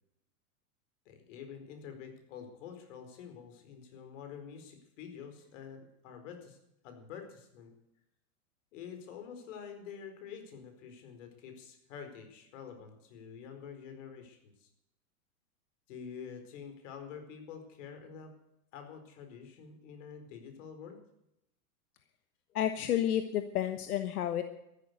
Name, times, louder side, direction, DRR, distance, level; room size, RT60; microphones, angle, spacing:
voice 1, 1.1-6.6 6.8-7.7 8.7-14.7 15.9-18.3 18.7-21.0, left 7 dB, 55° left, 6 dB, 4.6 m, -47 dB
voice 2, 22.5-24.4, left 11 dB, 85° left, 9 dB, 1.3 m, -30 dB
14.0 x 11.5 x 8.2 m, 0.84 s
supercardioid pair, 145°, 43 cm